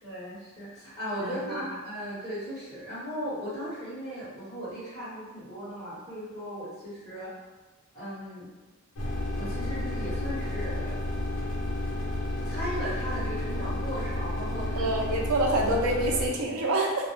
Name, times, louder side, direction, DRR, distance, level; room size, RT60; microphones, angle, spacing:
voice 1, 0.0-7.3 7.9-8.5 9.4-11.1 12.4-14.8, equal, 15° left, -12 dB, 1.0 m, -37 dB
voice 2, 1.2-1.7 14.8-17.1, right 2 dB, 85° right, 0 dB, 0.5 m, -27 dB
sound 1, 9.0-16.3, left 1 dB, 85° left, 0.7 m, -31 dB
2.1 x 2.0 x 3.0 m, 1.2 s
head